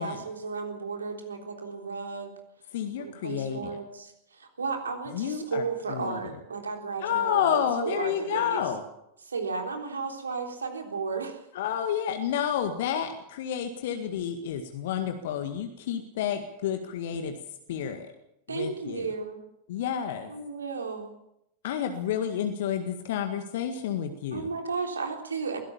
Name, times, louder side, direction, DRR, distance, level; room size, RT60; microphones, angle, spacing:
voice 1, 0.0-2.3 3.0-8.6 9.2-11.4 18.5-19.4 20.3-21.1 24.3-25.6, right 4 dB, 75° right, 4 dB, 3.6 m, -34 dB
voice 2, 2.7-3.8 5.1-5.6 5.9-6.2 7.0-8.8 11.6-17.3 17.7-18.1 18.5-19.1 19.7-20.3 21.6-24.5, left 9 dB, 55° left, 6 dB, 1.9 m, -30 dB
22.5 x 17.0 x 7.2 m, 0.82 s
figure-of-eight pair, 90°, 0 cm